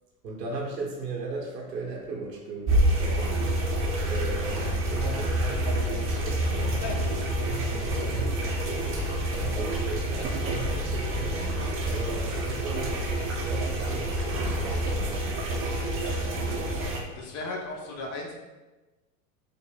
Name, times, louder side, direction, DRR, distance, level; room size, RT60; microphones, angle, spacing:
voice 1, 0.2-3.4 4.0-6.9 7.4-8.7 9.3-15.3, right 3 dB, 90° right, -2 dB, 0.9 m, -37 dB
sound 1, 2.7-17.0, right 1 dB, 25° right, 0.6 m, -28 dB
Conversation, 6.0-11.3, left 3 dB, 75° left, 0.8 m, -40 dB
voice 2, 17.1-18.3, left 2 dB, 35° left, 0 dB, 0.7 m, -37 dB
3.6 x 2.0 x 3.9 m, 1.1 s
hypercardioid pair, 100°, 48 cm